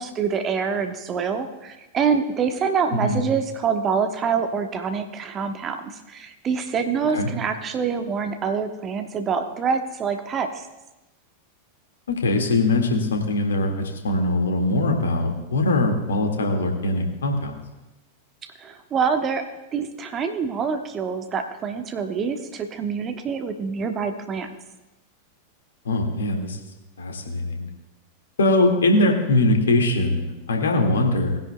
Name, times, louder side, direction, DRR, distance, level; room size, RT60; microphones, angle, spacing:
voice 1, 0.0-10.6 18.4-19.4 19.7-24.5, right 6 dB, 25° right, 6 dB, 1.1 m, -26 dB
voice 2, 12.1-17.6 25.9-26.6 27.0-27.7 28.4-31.4, left 2 dB, 65° left, 3 dB, 1.8 m, -21 dB
19.5 x 10.0 x 2.2 m, 1.0 s
figure-of-eight pair, 90°, 0 cm